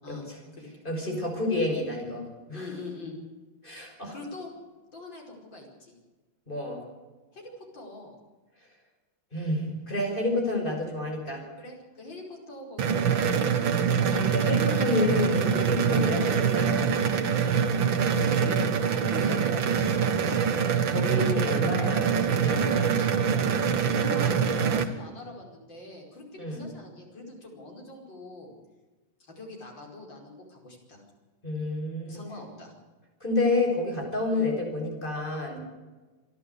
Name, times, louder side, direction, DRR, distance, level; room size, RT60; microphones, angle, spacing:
voice 1, 0.8-2.7 3.6-4.2 6.5-6.8 9.3-11.4 14.2-16.9 19.1-19.3 20.9-23.0 26.4-26.6 31.4-32.2 33.2-35.6, left 2 dB, 25° left, 1 dB, 6.0 m, -29 dB
voice 2, 2.5-3.2 4.1-4.5 4.9-6.0 7.3-8.1 11.6-14.5 15.8-16.1 18.3-18.6 18.9-20.9 23.9-28.6 29.2-31.0 32.1-32.7 34.3-34.5, left 2 dB, 65° left, 0 dB, 5.8 m, -43 dB
sound 1, 12.8-24.8, right 6 dB, 75° right, 2.2 m, -24 dB
27.5 x 11.5 x 8.2 m, 1.3 s
omnidirectional pair, 2.2 m